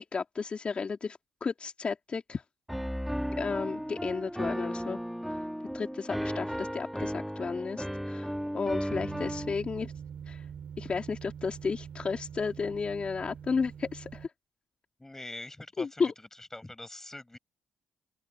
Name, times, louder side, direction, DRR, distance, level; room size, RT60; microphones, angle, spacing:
voice 1, 0.0-2.4 3.4-5.0 5.3-5.4 5.7-9.9 10.3-10.4 10.8-14.3 15.8-16.1, left 5 dB, 45° left, 3.2 m, -33 dB
Piano, 2.7-9.5, equal, ahead, 1.9 m, -34 dB
sound 1, 8.9-14.3, right 7 dB, 60° right, 5.0 m, -44 dB
voice 2, 15.0-16.0 16.5-17.4, left 2 dB, 15° left, 6.1 m, -43 dB
open air
supercardioid pair, 55°, 3 cm